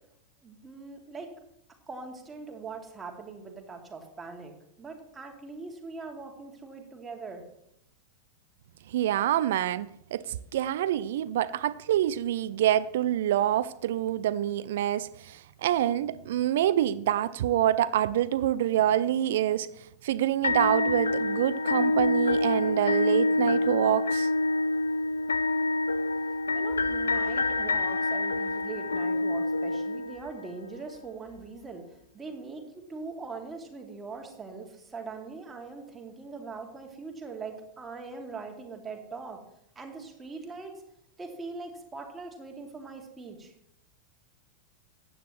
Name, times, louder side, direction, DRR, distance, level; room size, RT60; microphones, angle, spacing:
voice 1, 0.4-1.3 1.9-7.4 26.5-31.8 32.1-32.6 32.9-39.4 39.8-40.8 41.2-43.5, right 4 dB, 15° right, 2.2 m, -41 dB
voice 2, 8.9-19.7 20.0-24.3, right 12 dB, 55° right, 0.4 m, -26 dB
sound 1, 20.4-30.5, left 2 dB, 75° left, 0.3 m, -27 dB
15.0 x 9.9 x 3.0 m
figure-of-eight pair, 90°, 0 cm